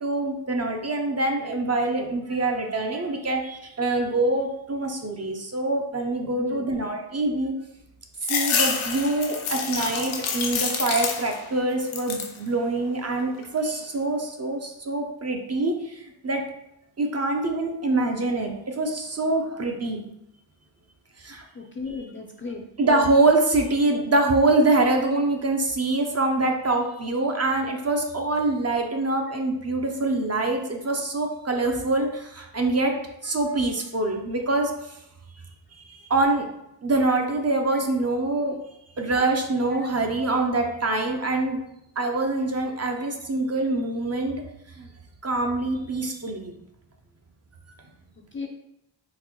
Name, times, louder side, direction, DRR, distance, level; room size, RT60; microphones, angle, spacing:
voice 1, 0.0-7.5 8.3-16.4 17.0-20.0 21.2-21.4 21.9-22.0 22.8-33.0 33.2-35.0 35.7-36.5 36.8-38.6 39.0-41.6 42.0-44.4 44.8-44.9 45.2-46.5, right 2 dB, 35° right, 3 dB, 0.5 m, -25 dB
sound 1, 8.2-11.5 11.8-12.4 12.9-13.6, left 5 dB, 85° left, 0.6 m, -28 dB
voice 2, 21.5-22.6 37.7-37.8 39.7-39.9 48.3-48.5, left 4 dB, 25° left, 1 dB, 0.4 m, -35 dB
3.8 x 2.1 x 3.0 m, 0.82 s
cardioid pair, 60°, 47 cm